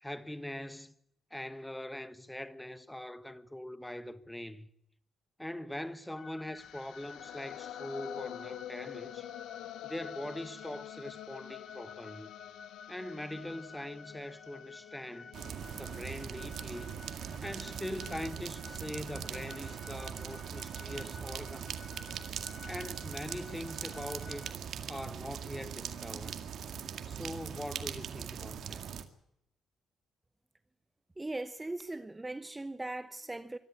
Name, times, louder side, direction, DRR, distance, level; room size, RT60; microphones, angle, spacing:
voice 1, 0.0-0.9 1.3-4.7 5.4-9.3 9.8-12.3 12.9-15.3 15.7-16.9 17.4-21.7 22.7-24.5 24.9-26.4 27.1-28.8, left 1 dB, 5° left, 1.3 m, -42 dB
sound 1, 6.2-24.5, left 4 dB, 35° left, 2.3 m, -53 dB
sound 2, 6.6-16.6, left 13 dB, 85° left, 0.8 m, -47 dB
sound 3, 15.3-29.0, right 8 dB, 65° right, 2.0 m, -41 dB
voice 2, 31.2-33.6, right 2 dB, 15° right, 0.8 m, -39 dB
24.5 x 13.5 x 8.5 m
cardioid pair, 90°, 0 cm